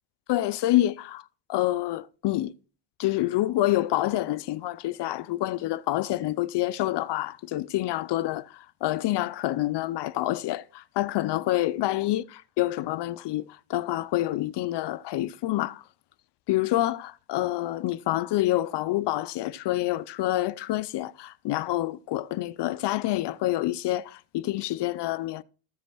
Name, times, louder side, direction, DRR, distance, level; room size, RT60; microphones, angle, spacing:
voice 1, 0.3-1.2 1.5-2.5 3.0-15.8 16.5-25.4, left 15 dB, 60° left, 0.5 m, -27 dB
14.5 x 5.3 x 6.0 m
cardioid pair, 175°, 48 cm